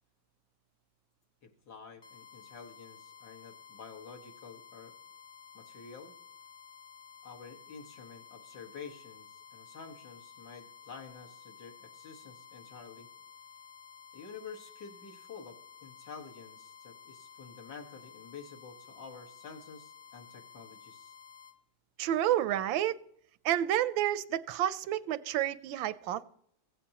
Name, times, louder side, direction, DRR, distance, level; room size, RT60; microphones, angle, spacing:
voice 1, 1.4-4.9 5.5-6.2 7.2-9.3 9.5-13.1 14.1-21.1, left 5 dB, 55° left, 2.1 m, -49 dB
sound 1, 2.0-21.6, left 7 dB, 30° left, 0.9 m, -53 dB
voice 2, 22.0-23.0 23.4-26.2, right 12 dB, 85° right, 1.4 m, -30 dB
16.0 x 15.5 x 2.9 m
omnidirectional pair, 2.1 m